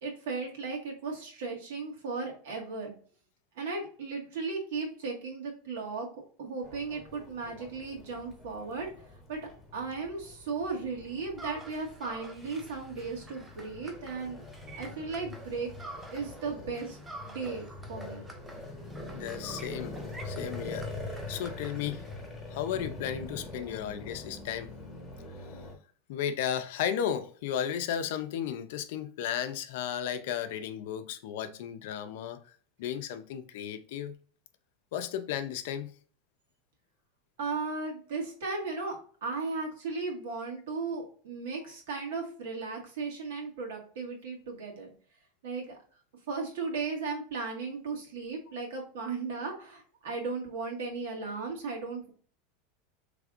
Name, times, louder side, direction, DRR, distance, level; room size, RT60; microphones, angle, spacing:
voice 1, 0.0-2.9 3.5-6.1 6.4-8.9 9.3-9.4 9.7-14.4 14.8-15.7 16.1-17.0 17.2-18.2 37.4-44.9 45.4-45.8 46.3-52.1, right 4 dB, 80° right, 1.7 m, -36 dB
sound 1, 6.6-25.7, left 2 dB, 10° left, 1.3 m, -44 dB
sound 2, 11.4-16.4 16.7-22.3, right 2 dB, 10° right, 0.5 m, -48 dB
voice 2, 19.1-19.9 20.2-20.9 21.3-22.0 22.5-24.7 26.1-32.4 32.8-34.1 34.9-35.9, left 9 dB, 65° left, 0.5 m, -34 dB
5.0 x 3.3 x 2.5 m
supercardioid pair, 165°, 0 cm